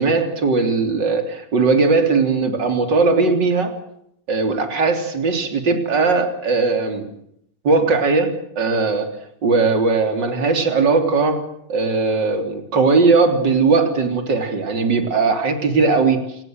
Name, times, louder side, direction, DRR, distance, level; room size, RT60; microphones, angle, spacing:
voice 1, 0.0-3.7 4.3-7.1 7.6-9.1 9.4-11.4 11.7-16.2, right 4 dB, 35° right, 6 dB, 3.7 m, -18 dB
28.5 x 18.5 x 7.9 m, 0.72 s
omnidirectional pair, 3.5 m